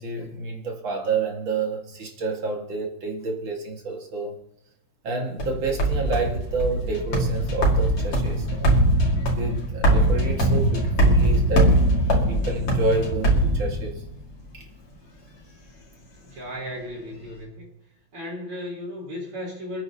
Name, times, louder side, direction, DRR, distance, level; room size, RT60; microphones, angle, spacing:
voice 1, 0.0-4.4 5.0-8.8 9.3-12.0 12.3-14.0 14.5-14.6, right 3 dB, 65° right, 1 dB, 2.8 m, -29 dB
sound 1, 5.4-14.2, right 1 dB, 85° left, 3.3 m, -21 dB
voice 2, 16.2-17.7 18.1-19.8, left 1 dB, 85° right, -5 dB, 5.0 m, -35 dB
28.5 x 9.5 x 2.9 m, 0.84 s
omnidirectional pair, 2.4 m